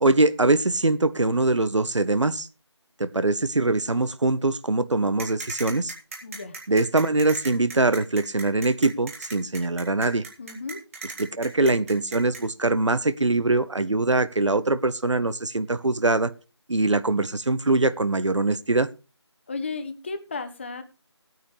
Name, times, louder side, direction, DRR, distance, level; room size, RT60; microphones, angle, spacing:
voice 1, 0.0-2.5 3.0-5.9 6.7-10.2 11.2-16.3 16.7-18.9, right 2 dB, 80° right, 15 dB, 1.1 m, -23 dB
sound 1, 5.2-12.4, right 3 dB, 30° right, 3.3 m, -37 dB
voice 2, 6.2-6.5 10.4-10.8 19.5-20.8, left 4 dB, 25° left, 9 dB, 1.1 m, -34 dB
17.5 x 9.3 x 3.3 m, 0.32 s
figure-of-eight pair, 170°, 15 cm